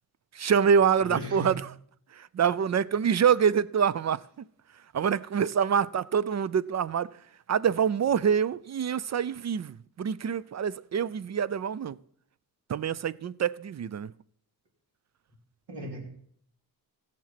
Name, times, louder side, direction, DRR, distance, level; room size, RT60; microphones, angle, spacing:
voice 1, 0.3-1.5 2.2-4.2 4.9-7.1 7.5-12.0 12.7-14.1, right 7 dB, 45° right, 0.4 m, -26 dB
voice 2, 1.0-1.5 15.7-16.0, equal, 80° right, 3.4 m, -37 dB
15.0 x 7.5 x 5.8 m
cardioid pair, 85°, 41 cm